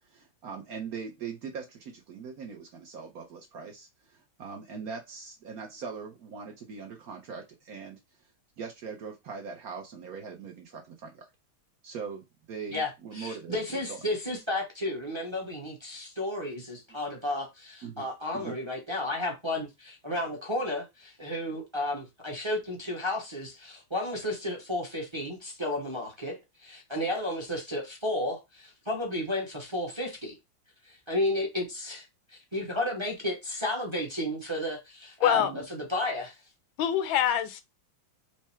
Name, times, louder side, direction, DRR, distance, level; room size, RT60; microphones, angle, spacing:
voice 1, 0.1-8.0 8.6-11.3 11.8-14.0 17.8-18.0 18.3-18.6 35.3-35.6, right 5 dB, 60° right, 1.0 m, -41 dB
voice 2, 12.7-30.4 30.9-32.0 32.3-36.4, left 1 dB, 20° right, 0.7 m, -33 dB
voice 3, 35.2-35.5 36.8-37.6, left 10 dB, 85° left, 1.5 m, -24 dB
4.6 x 2.1 x 4.3 m
omnidirectional pair, 2.1 m